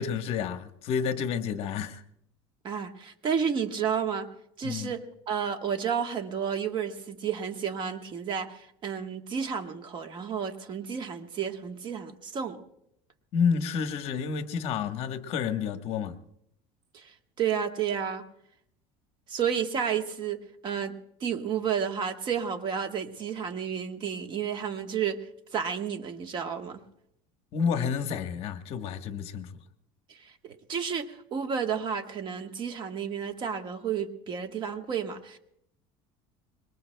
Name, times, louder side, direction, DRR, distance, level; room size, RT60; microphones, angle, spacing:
voice 1, 0.0-2.0 4.6-4.9 13.3-16.2 27.5-29.6, left 6 dB, 45° left, 1.2 m, -30 dB
voice 2, 2.6-4.3 4.6-12.6 16.9-17.0 17.4-18.2 19.3-25.2 25.5-26.8 30.2-35.4, right 7 dB, 35° right, 1.3 m, -31 dB
25.5 x 22.0 x 2.2 m
cardioid pair, 150°, 14 cm